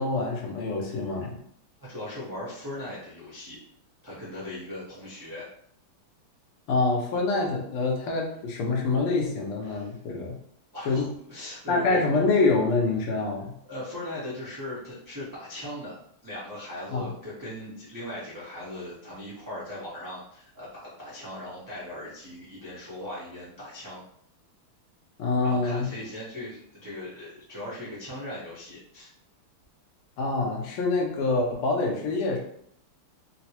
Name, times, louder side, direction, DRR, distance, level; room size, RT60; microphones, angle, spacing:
voice 1, 0.0-1.4 6.7-10.3 10.9-11.0 11.7-13.5 16.9-17.1 25.2-25.9 30.2-32.4, left 3 dB, 85° left, 0 dB, 1.7 m, -26 dB
voice 2, 1.8-3.6 4.0-5.4 9.6-9.9 10.7-12.2 13.7-24.0 25.4-29.1, left 1 dB, 30° right, -9 dB, 0.3 m, -39 dB
4.1 x 2.0 x 2.8 m, 0.67 s
omnidirectional pair, 2.4 m